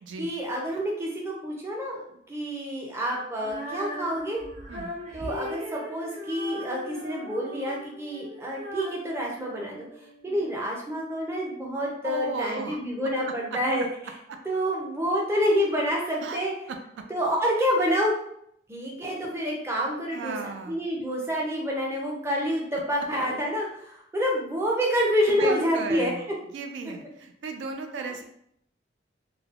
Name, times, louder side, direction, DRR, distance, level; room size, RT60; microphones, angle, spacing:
voice 1, 0.2-2.0 2.3-4.4 5.1-9.8 10.2-13.9 14.5-16.5 17.1-18.1 18.7-20.4 20.7-26.1, equal, 15° right, -2 dB, 0.5 m, -28 dB
Female singing, 3.4-10.4, equal, 40° right, 0.8 m, -39 dB
voice 2, 12.0-12.8 13.2-13.6 16.2-16.4 20.1-20.8 24.9-25.0 25.3-26.3 26.5-28.2, right 4 dB, 85° right, 4 dB, 0.3 m, -35 dB
3.1 x 2.0 x 2.3 m, 0.72 s
head